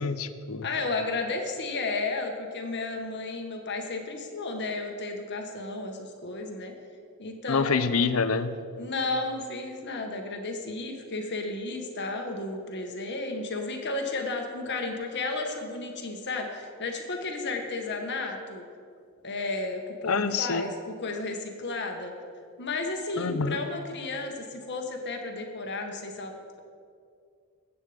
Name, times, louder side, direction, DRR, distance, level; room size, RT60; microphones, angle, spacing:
voice 1, 0.0-0.7 7.5-8.6 20.1-20.7 23.2-23.6, left 5 dB, 70° left, 12 dB, 0.7 m, -26 dB
voice 2, 0.6-6.7 7.2-7.8 8.8-18.6 19.2-22.1 22.6-26.6, left 3 dB, 55° left, 3 dB, 1.6 m, -33 dB
20.5 x 8.7 x 5.2 m, 2.3 s
head